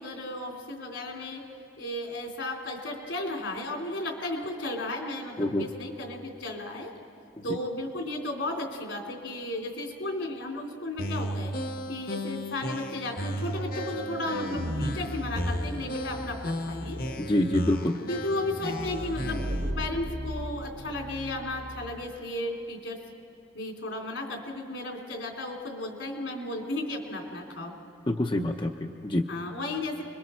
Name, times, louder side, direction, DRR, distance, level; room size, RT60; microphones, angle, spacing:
voice 1, 0.0-1.4 1.8-6.9 7.4-11.5 11.9-17.0 18.1-19.5 19.8-23.0 23.5-27.7 29.3-30.0, left 1 dB, 80° left, 1 dB, 3.3 m, -34 dB
sound 1, 11.0-19.7, left 1 dB, 50° left, 1.1 m, -35 dB
sound 2, 13.3-22.0, equal, 65° right, 1.8 m, -36 dB
voice 2, 17.2-18.0 28.1-29.3, left 1 dB, 25° left, 3 dB, 0.7 m, -26 dB
29.5 x 22.5 x 4.5 m, 2.7 s
head